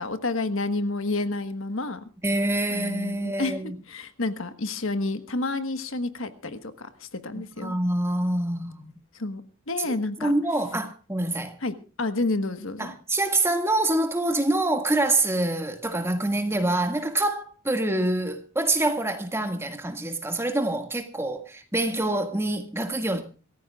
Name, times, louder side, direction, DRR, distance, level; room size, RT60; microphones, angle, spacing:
voice 1, 0.0-2.1 2.7-7.8 9.1-10.3 11.6-12.9, left 2 dB, 70° left, 1.4 m, -30 dB
voice 2, 2.2-3.8 7.3-8.9 9.9-11.6 12.8-23.2, right 2 dB, 10° right, 1.9 m, -26 dB
26.5 x 15.0 x 2.4 m
head